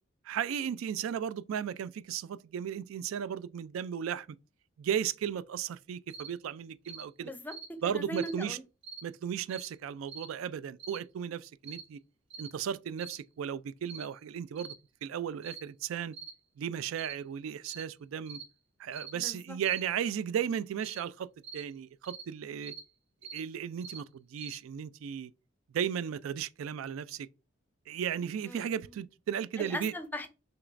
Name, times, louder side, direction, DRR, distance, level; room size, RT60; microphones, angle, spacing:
voice 1, 0.2-4.3 4.8-7.3 7.8-8.6 9.0-12.0 12.4-14.7 15.0-16.1 16.6-18.4 18.8-21.3 21.5-22.7 23.3-25.3 25.7-27.3 27.9-29.9, right 8 dB, 80° right, 0.3 m, -35 dB
sound 1, 6.1-6.3 6.9-7.1 7.5-7.7 8.1-8.4 8.8-9.1 9.5-9.7 10.1-10.3 10.8-11.0 11.6-11.9 12.3-12.5 13.0-13.2 13.9-14.1 14.6-14.8 15.4-15.6 16.1-16.4 17.0-17.2 17.6-17.9 18.3-18.5 18.9-19.1 19.6-19.8 20.8-21.0 21.4-21.6 22.1-22.3 22.6-22.9 23.2-23.4 23.8-24.0 24.4-24.6, right 6 dB, 60° right, 1.1 m, -45 dB
voice 2, 7.2-8.6 19.1-19.6 28.4-29.0 29.6-30.3, equal, 10° left, 0.5 m, -40 dB
6.4 x 2.9 x 2.5 m
head